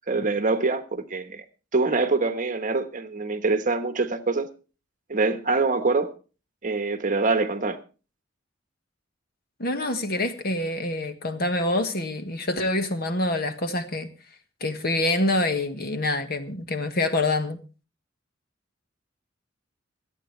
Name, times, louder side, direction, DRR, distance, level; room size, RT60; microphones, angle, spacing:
voice 1, 0.1-1.4 1.7-4.5 5.1-6.1 6.6-7.8, right 3 dB, 45° right, 1.2 m, -24 dB
voice 2, 9.6-14.1 14.6-17.6, left 2 dB, 55° left, 1.6 m, -26 dB
26.5 x 8.9 x 3.3 m
head